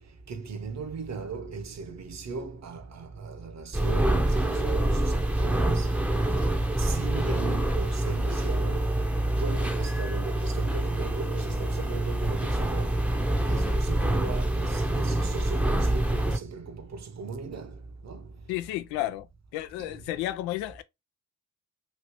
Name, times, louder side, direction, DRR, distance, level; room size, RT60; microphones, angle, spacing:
voice 1, 0.3-5.9 6.8-8.9 9.4-13.0 13.5-17.7 18.0-18.3 19.8-19.9, right 4 dB, 45° right, 0.9 m, -37 dB
sound 1, 3.7-16.4, right 1 dB, 5° right, 0.7 m, -26 dB
voice 2, 18.5-19.3 19.5-20.8, left 14 dB, 75° left, 0.5 m, -32 dB
3.2 x 2.8 x 3.0 m
hypercardioid pair, 45°, 39 cm